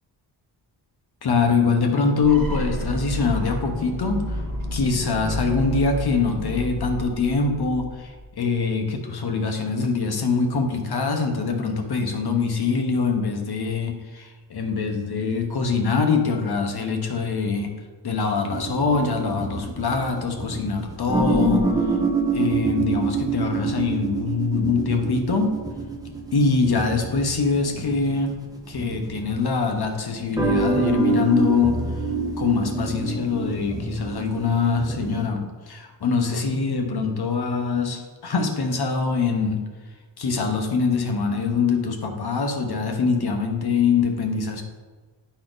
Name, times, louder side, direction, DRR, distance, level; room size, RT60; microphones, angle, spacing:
voice 1, 1.2-4.4 4.7-17.7 18.0-21.6 22.3-25.5 26.3-28.3 28.7-31.8 32.4-39.6 40.2-44.6, left 4 dB, 55° left, 3 dB, 1.0 m, -23 dB
sound 1, 2.2-8.2, equal, 45° right, 1.1 m, -30 dB
sound 2, 18.5-29.7 30.3-35.3, right 3 dB, 10° right, 0.8 m, -26 dB
10.5 x 4.3 x 3.9 m, 1.3 s
wide cardioid pair, 150°, 45 cm